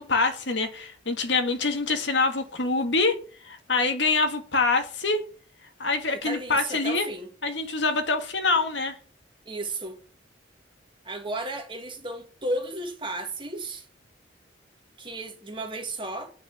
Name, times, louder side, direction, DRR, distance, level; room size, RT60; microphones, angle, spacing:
voice 1, 0.0-5.2 5.8-7.1 7.4-9.0, left 3 dB, 75° left, 1.9 m, -25 dB
voice 2, 6.1-7.3 9.5-10.0 11.0-13.9 15.0-16.3, right 2 dB, 25° right, 2.2 m, -33 dB
9.4 x 6.0 x 8.4 m
head